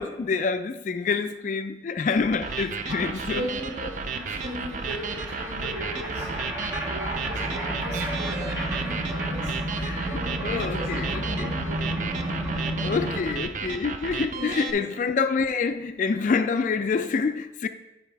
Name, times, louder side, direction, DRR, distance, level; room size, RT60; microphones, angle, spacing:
voice 1, 0.0-3.5 8.4-8.5 9.8-10.2 10.4-11.5 12.8-17.7, left 5 dB, 45° left, 0.3 m, -27 dB
sound 1, 2.3-2.4 2.5-13.4, right 1 dB, 15° right, 1.3 m, -32 dB
sound 2, 2.3-14.7, right 5 dB, 45° right, 0.4 m, -34 dB
voice 2, 2.9-12.3 12.9-13.2 14.3-14.9, equal, 80° right, 2.8 m, -38 dB
9.6 x 4.0 x 4.6 m
head